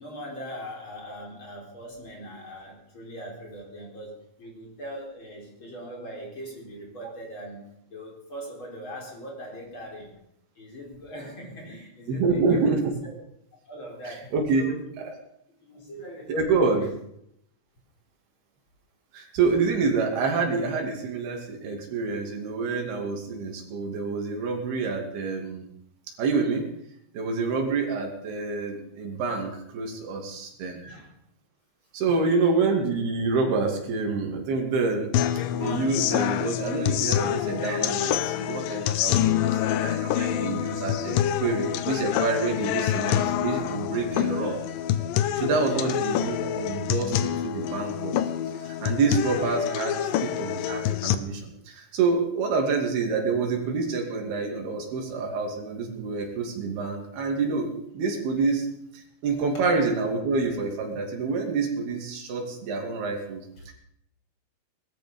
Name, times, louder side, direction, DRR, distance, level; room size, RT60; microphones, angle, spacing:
voice 1, 0.0-7.6 7.9-10.1 10.5-13.1 13.7-15.0 15.6-16.9 30.8-31.2 44.3-44.6 45.6-45.9 57.2-57.3 63.6-63.7, equal, 30° left, 0 dB, 4.7 m, -41 dB
voice 2, 12.1-12.8 14.3-14.6 15.0-15.1 16.3-16.8 19.1-25.7 26.2-26.7 27.1-30.8 31.9-35.1 35.5-44.6 45.4-48.2 48.6-58.7 58.9-63.4, right 4 dB, 80° right, 1 dB, 4.6 m, -27 dB
sound 1, 35.1-51.2, left 11 dB, 75° left, 2.3 m, -26 dB
19.0 x 13.0 x 5.5 m, 0.75 s
omnidirectional pair, 4.4 m